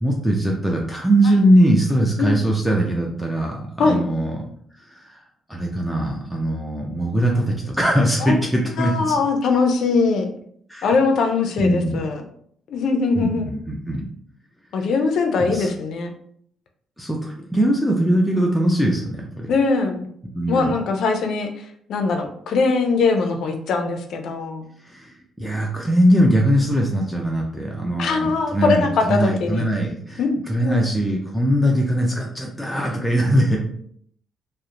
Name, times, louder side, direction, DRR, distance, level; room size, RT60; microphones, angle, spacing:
voice 1, 0.0-4.4 4.9-5.2 5.5-9.2 10.7-10.9 11.6-12.0 13.2-14.1 15.4-15.7 17.0-19.5 20.3-20.7 24.8-33.6, right 1 dB, ahead, -2 dB, 0.4 m, -21 dB
voice 2, 8.8-10.3 10.8-12.2 12.7-13.5 14.7-16.1 19.5-20.1 20.5-21.5 21.9-24.7 28.0-29.7 30.2-30.9, left 4 dB, 70° left, 5 dB, 0.4 m, -21 dB
2.8 x 2.0 x 2.4 m, 0.65 s
cardioid pair, 90°, 0 cm